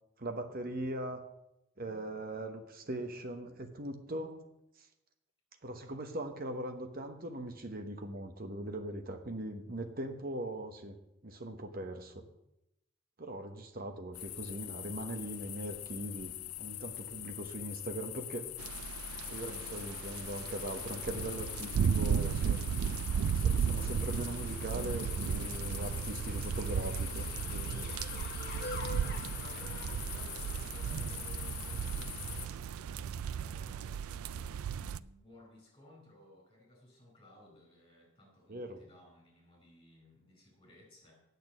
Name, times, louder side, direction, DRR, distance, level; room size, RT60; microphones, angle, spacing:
voice 1, 0.2-1.2 1.8-4.4 4.8-4.9 5.6-11.0 11.2-12.2 13.2-18.5 19.3-22.6 23.3-28.0 29.2-29.3 38.5-38.8, right 1 dB, 45° right, 6 dB, 1.1 m, -40 dB
sound 1, 14.1-32.5, left 15 dB, 85° left, 0.5 m, -44 dB
sound 2, 18.6-35.0, right 7 dB, 90° right, 0.3 m, -35 dB
sound 3, 19.2-32.5, left 2 dB, 50° left, 1.3 m, -50 dB
voice 2, 29.0-31.8 32.4-41.2, left 1 dB, 20° left, -2 dB, 4.4 m, -59 dB
8.5 x 6.7 x 8.5 m, 0.87 s
head